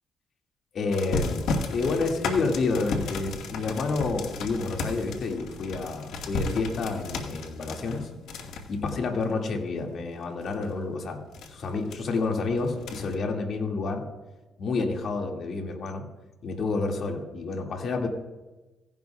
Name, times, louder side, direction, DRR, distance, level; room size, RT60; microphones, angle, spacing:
voice 1, 0.7-8.1 8.7-14.0 14.6-16.0 16.4-18.1, left 3 dB, 60° left, 2 dB, 2.1 m, -29 dB
sound 1, 0.9-9.8 10.2-10.7 11.3-12.0 12.6-13.1, left 3 dB, 80° left, 1.2 m, -34 dB
16.0 x 11.0 x 2.3 m, 1.1 s
cardioid pair, 90°, 0 cm